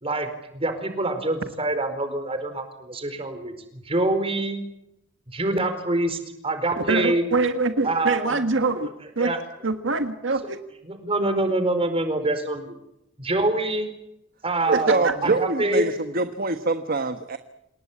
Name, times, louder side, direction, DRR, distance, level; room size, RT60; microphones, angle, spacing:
voice 1, 0.0-3.5 3.9-4.6 5.3-6.2 6.4-7.2 7.8-8.3 9.2-9.4 10.9-12.7 13.2-13.9 14.4-15.9, right 2 dB, 30° right, 9 dB, 4.5 m, -25 dB
voice 2, 6.8-8.9 9.2-9.3 9.6-10.6 14.7-15.1, right 3 dB, 70° right, 8 dB, 1.7 m, -24 dB
voice 3, 14.7-17.4, right 3 dB, 50° right, 9 dB, 1.4 m, -24 dB
28.5 x 19.0 x 8.6 m, 0.84 s
head